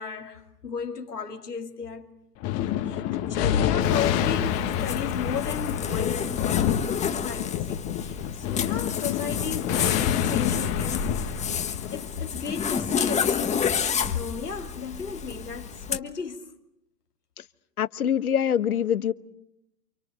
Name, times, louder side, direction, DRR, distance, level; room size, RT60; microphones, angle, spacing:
voice 1, 0.0-2.1 2.8-11.4 11.9-16.5, left 6 dB, 85° left, 3.0 m, -35 dB
Thunder, 2.4-13.3, left 10 dB, 35° left, 1.8 m, -28 dB
Zipper (clothing), 3.8-16.0, left 6 dB, 15° left, 1.5 m, -30 dB
voice 2, 17.8-19.1, left 9 dB, 70° left, 1.2 m, -24 dB
29.0 x 26.5 x 6.8 m
figure-of-eight pair, 110°, 46 cm